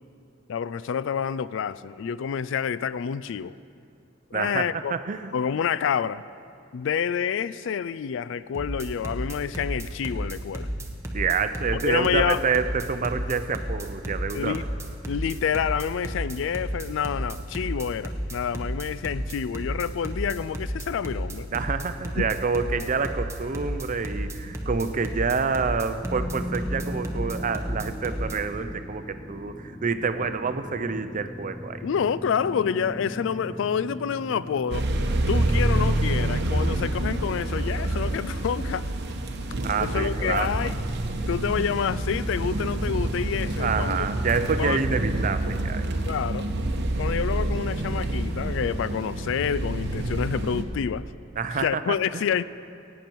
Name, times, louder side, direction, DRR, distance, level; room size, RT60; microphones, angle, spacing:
voice 1, 0.5-3.6 4.3-4.9 5.3-6.2 6.7-10.7 11.8-12.4 14.3-14.6 15.1-21.5 22.2-22.3 31.8-34.9 35.3-38.9 39.8-40.7 41.3-44.1 44.6-44.8 46.0-46.5 47.0-51.0 51.5-52.4, left 7 dB, 70° left, 0.3 m, -28 dB
voice 2, 4.3-5.3 11.1-14.7 21.5-31.8 39.6-40.5 43.6-45.9 51.4-52.0, right 5 dB, 40° right, 0.5 m, -27 dB
sound 1, 8.5-28.4, equal, 15° right, 1.0 m, -32 dB
sound 2, 26.0-38.1, equal, 10° left, 1.3 m, -39 dB
sound 3, 34.7-50.6, right 1 dB, 60° right, 0.9 m, -27 dB
16.5 x 9.1 x 4.6 m
head